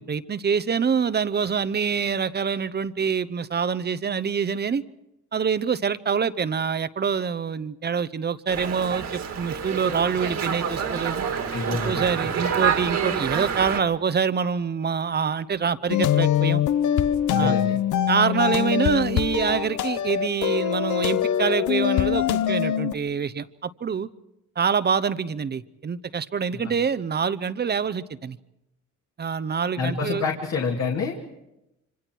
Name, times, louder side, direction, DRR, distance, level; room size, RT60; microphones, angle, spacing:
voice 1, 0.0-4.8 5.3-11.3 11.8-16.6 17.4-17.5 18.1-24.1 24.6-28.4 29.2-30.2, right 6 dB, 35° right, 16 dB, 0.8 m, -25 dB
Dog, 8.5-13.8, right 7 dB, 60° right, 2.1 m, -27 dB
voice 2, 11.5-12.1 17.3-17.8 26.6-26.7 29.8-31.1, left 4 dB, 60° left, 0 dB, 2.4 m, -27 dB
sound 1, 15.9-22.9, left 10 dB, 80° left, 0.8 m, -23 dB
26.0 x 26.0 x 4.6 m, 0.89 s
cardioid pair, 90°, 30 cm